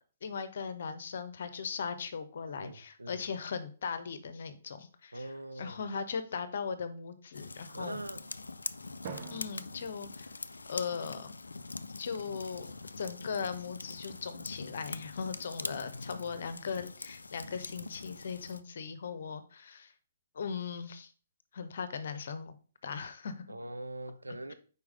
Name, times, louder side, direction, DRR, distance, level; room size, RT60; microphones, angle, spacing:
voice 1, 0.2-5.3 5.6-8.0 9.3-10.3 10.7-11.3 12.0-12.7 13.0-19.9 20.3-21.1 21.5-22.5 22.8-23.4, left 6 dB, 55° left, 0.8 m, -38 dB
voice 2, 2.6-3.2 5.1-5.8 7.7-8.2 15.6-16.3 23.5-24.5, right 1 dB, 80° right, 0.6 m, -43 dB
sound 1, 7.3-18.6, left 3 dB, 75° left, 0.4 m, -43 dB
Drum, 9.0-11.3, right 6 dB, 45° right, 1.0 m, -47 dB
4.8 x 4.7 x 4.8 m
figure-of-eight pair, 125°, 0 cm